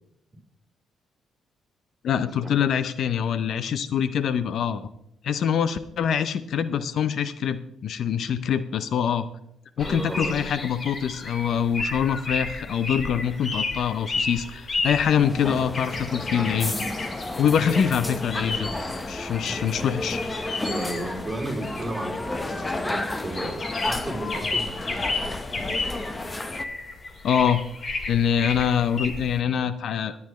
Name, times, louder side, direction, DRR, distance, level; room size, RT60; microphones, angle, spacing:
voice 1, 2.0-4.8 5.2-9.3 9.8-16.7 17.4-18.7 19.1-20.2 27.2-27.6 28.1-30.2, left 8 dB, 65° left, 13 dB, 0.6 m, -24 dB
sound 1, 9.8-29.4, left 3 dB, 40° left, 2.1 m, -33 dB
voice 2, 9.8-10.5 17.7-17.9 19.5-19.6 20.6-24.7, right 1 dB, 15° right, -1 dB, 4.4 m, -33 dB
sound 2, 14.9-26.6, left 2 dB, 20° left, 1.0 m, -32 dB
17.0 x 9.7 x 3.2 m, 0.78 s
cardioid pair, 90°, 0 cm